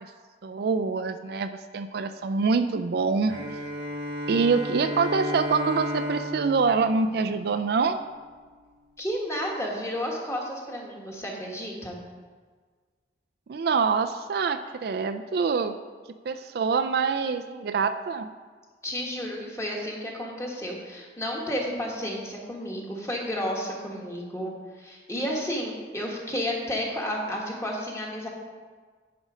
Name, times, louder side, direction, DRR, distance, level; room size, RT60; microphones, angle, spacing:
voice 1, 0.4-3.3 4.3-8.0 13.5-15.8 16.2-18.3, right 4 dB, 60° right, 9 dB, 0.4 m, -25 dB
Bowed string instrument, 3.3-8.0, equal, 75° right, 1.3 m, -34 dB
voice 2, 9.0-12.0 18.8-28.3, equal, 15° left, -1 dB, 1.4 m, -32 dB
10.5 x 5.1 x 5.0 m, 1.5 s
head